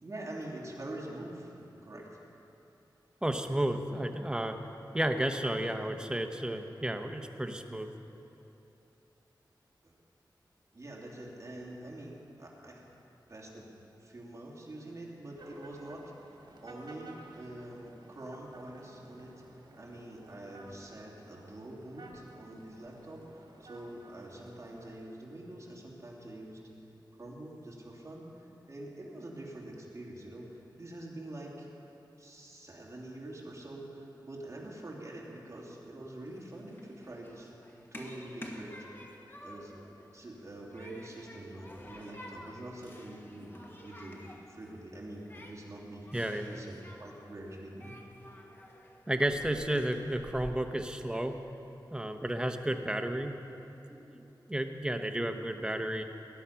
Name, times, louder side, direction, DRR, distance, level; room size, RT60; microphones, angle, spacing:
voice 1, 0.0-2.2 9.8-9.9 10.7-12.8 13.3-13.7 14.0-16.1 16.6-19.3 19.8-23.2 23.6-26.6 27.2-31.7 32.2-37.5 37.9-38.7 39.4-39.8 40.1-44.2 44.5-48.0, right 1 dB, 40° right, -3 dB, 2.8 m, -45 dB
voice 2, 3.2-4.6 4.9-7.9 46.1-46.6 49.1-51.4 51.9-53.4 53.9-56.0, right 1 dB, 10° right, 5 dB, 1.0 m, -32 dB
sound 1, 15.4-25.1, right 2 dB, 80° right, 2.0 m, -54 dB
Human group actions, 36.2-50.5, left 1 dB, 25° left, 1.5 m, -51 dB
19.5 x 11.0 x 5.8 m, 2.9 s
wide cardioid pair, 110°, 8 cm